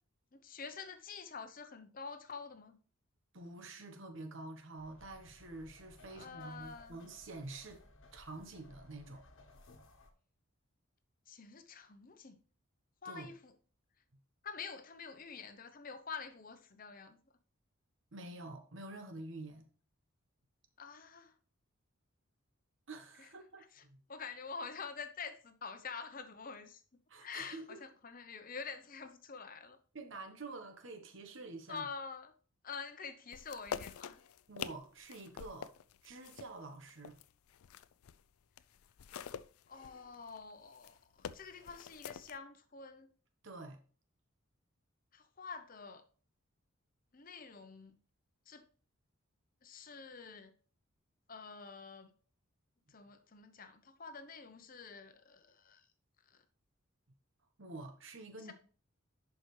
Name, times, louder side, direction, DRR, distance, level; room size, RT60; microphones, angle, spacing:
voice 1, 0.3-2.8 6.1-7.0 11.3-12.4 13.0-13.5 14.4-17.2 20.8-21.3 23.2-23.3 23.6-23.8 24.1-29.8 31.7-32.3 32.6-34.2 39.7-43.1 45.1-46.0 47.1-48.0 48.5-48.7 49.6-50.5 51.3-52.1 52.9-55.9 56.3-56.4 58.4-58.5, left 5 dB, 40° left, 0.8 m, -47 dB
voice 2, 3.3-7.8 8.1-9.2 13.0-13.3 18.1-19.7 22.9-24.0 27.1-27.8 29.9-31.9 34.5-35.7 36.0-37.2 43.4-43.8 57.6-58.5, right 2 dB, 60° right, 1.2 m, -48 dB
sound 1, 4.8-10.1, left 2 dB, 60° left, 1.3 m, -60 dB
sound 2, 33.3-38.2 38.6-42.4, left 7 dB, 85° left, 0.4 m, -46 dB
11.0 x 4.9 x 3.2 m
head